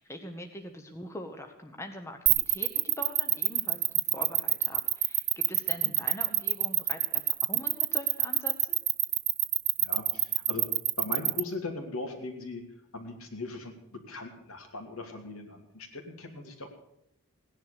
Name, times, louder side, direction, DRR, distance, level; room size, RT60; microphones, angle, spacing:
voice 1, 0.0-8.8, equal, 10° left, 4 dB, 1.1 m, -43 dB
sound 1, 2.3-11.4, right 20 dB, 80° right, 0.9 m, -25 dB
voice 2, 9.8-10.7 11.0-12.6 12.9-16.7, left 3 dB, 70° left, 3 dB, 2.8 m, -39 dB
17.0 x 10.5 x 6.9 m, 0.78 s
head